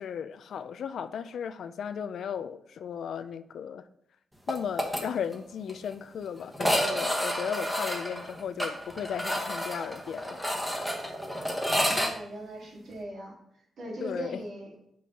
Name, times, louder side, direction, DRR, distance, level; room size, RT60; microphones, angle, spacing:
voice 1, 0.0-3.9 4.5-11.1 14.0-14.4, left 8 dB, 70° left, 0.4 m, -36 dB
sound 1, 4.5-5.0 5.3-5.4 5.7-5.8 6.5-12.1, equal, ahead, 1.0 m, -30 dB
voice 2, 11.9-13.4 13.8-14.7, right 1 dB, 65° right, 2.1 m, -39 dB
5.9 x 5.4 x 3.7 m
cardioid pair, 125°, 0 cm